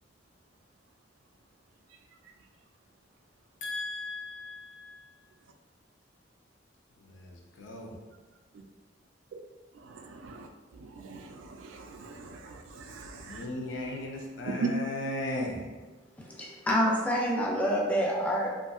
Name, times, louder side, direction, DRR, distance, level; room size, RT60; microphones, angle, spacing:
voice 1, 3.6-5.1 7.0-8.0 13.2-15.7, left 1 dB, 80° left, 0.5 m, -37 dB
voice 2, 11.0-11.5 11.8-13.4 14.6-14.7, right 5 dB, 90° right, 0.3 m, -38 dB
voice 3, 16.2-18.5, equal, 10° left, 0.4 m, -27 dB
2.7 x 2.4 x 2.3 m
head